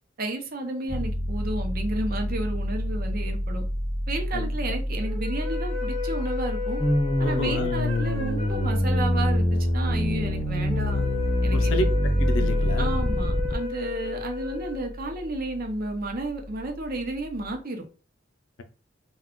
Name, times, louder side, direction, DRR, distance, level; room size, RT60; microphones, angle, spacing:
voice 1, 0.2-3.6 4.1-6.8 7.2-9.5 9.7-11.0 11.4-11.9 12.8-17.8, right 2 dB, 50° right, 0.6 m, -32 dB
Piano, 0.9-17.6, equal, 80° right, 1.0 m, -32 dB
sound 1, 5.0-15.5, left 6 dB, 30° right, 0.9 m, -35 dB
sound 2, 6.8-13.5, left 1 dB, 30° left, 0.5 m, -24 dB
voice 2, 7.2-7.7 11.5-11.9 12.2-13.0 14.0-14.2, left 1 dB, 80° left, 0.5 m, -30 dB
2.3 x 2.3 x 3.6 m
head